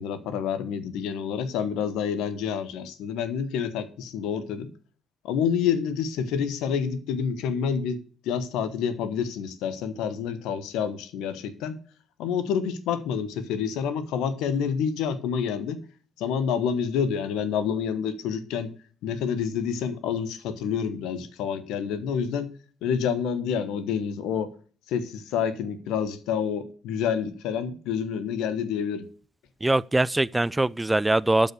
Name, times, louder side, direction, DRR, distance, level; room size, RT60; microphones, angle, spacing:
voice 1, 0.0-4.7 5.2-8.0 8.2-11.8 12.2-15.8 16.2-18.7 19.0-22.5 22.8-24.5 24.9-29.0, left 7 dB, 75° left, 1.2 m, -28 dB
voice 2, 29.6-31.5, right 2 dB, 15° right, 0.4 m, -22 dB
12.0 x 5.5 x 6.4 m
hypercardioid pair, 45°, 0 cm